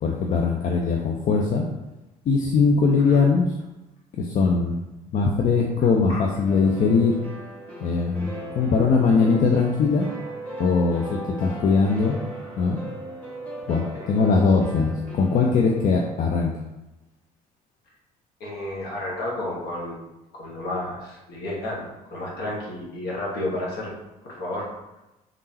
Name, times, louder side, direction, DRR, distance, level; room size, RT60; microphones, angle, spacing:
voice 1, 0.0-1.6 2.3-3.5 4.1-4.8 5.1-7.2 7.8-10.1 10.6-12.2 12.6-12.8 13.7-16.5, left 4 dB, 40° left, 0 dB, 0.5 m, -21 dB
sound 1, 6.5-16.4, right 1 dB, 5° left, 1.3 m, -38 dB
voice 2, 18.4-20.0 20.3-23.9 24.2-24.7, left 1 dB, 60° left, -4 dB, 1.3 m, -31 dB
3.7 x 3.6 x 2.8 m, 0.98 s
figure-of-eight pair, 50°, 19 cm